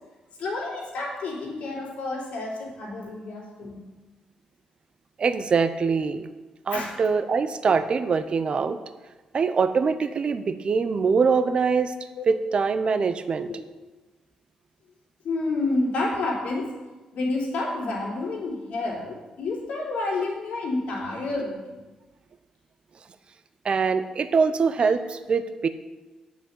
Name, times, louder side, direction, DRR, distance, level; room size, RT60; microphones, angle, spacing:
voice 1, 0.4-3.8 6.7-6.9 12.1-12.2 13.5-13.6 15.2-16.7 17.1-21.8, left 2 dB, 75° left, -4 dB, 3.5 m, -29 dB
voice 2, 5.2-6.3 6.7-8.8 9.3-11.9 12.3-13.5 23.6-25.7, right 5 dB, 50° right, 11 dB, 0.8 m, -23 dB
8.5 x 6.2 x 7.4 m, 1.2 s
cardioid pair, 70°, 2 cm